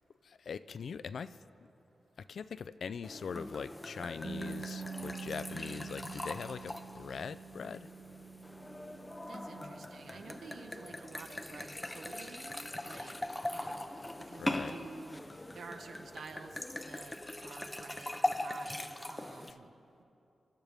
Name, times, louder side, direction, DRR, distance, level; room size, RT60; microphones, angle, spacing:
voice 1, 0.2-1.4 2.2-7.9 14.4-14.7, left 6 dB, 70° left, 13 dB, 0.3 m, -42 dB
sound 1, 3.0-19.5, left 1 dB, 15° left, 0.6 m, -41 dB
sound 2, 4.2-16.1, right 5 dB, 45° right, 0.7 m, -48 dB
voice 2, 9.3-13.1 13.5-17.2 17.4-19.7, right 4 dB, 75° right, 5 dB, 1.1 m, -50 dB
25.0 x 12.0 x 3.5 m, 2.8 s
wide cardioid pair, 135°, 0 cm